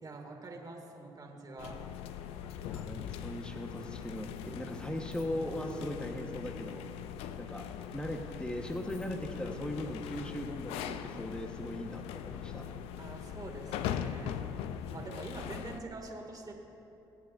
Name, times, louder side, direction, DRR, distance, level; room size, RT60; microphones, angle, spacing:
voice 1, 0.0-1.8 13.0-14.4 14.9-16.5, right 2 dB, 40° right, 1 dB, 2.1 m, -45 dB
sound 1, 1.6-15.8, left 9 dB, 80° left, 0.4 m, -41 dB
voice 2, 2.7-6.8 7.4-7.6 7.9-12.7, left 1 dB, 10° left, 3 dB, 1.2 m, -39 dB
24.0 x 8.2 x 2.6 m, 2.9 s
supercardioid pair, 55°, 10 cm